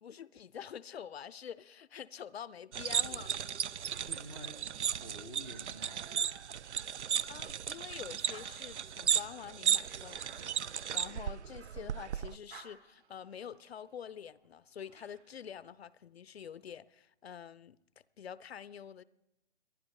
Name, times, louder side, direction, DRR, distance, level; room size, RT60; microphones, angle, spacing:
voice 1, 0.0-3.4 7.1-10.6 10.9-17.8 18.2-19.0, left 8 dB, 65° left, 0.5 m, -47 dB
sound 1, 2.7-12.4, right 8 dB, 80° right, 0.5 m, -35 dB
sound 2, 3.9-6.6 7.1-11.9 12.2-15.5, right 6 dB, 50° right, 2.1 m, -60 dB
voice 2, 4.1-6.1, equal, 10° right, 0.5 m, -49 dB
29.0 x 11.0 x 3.2 m
figure-of-eight pair, 140°, 34 cm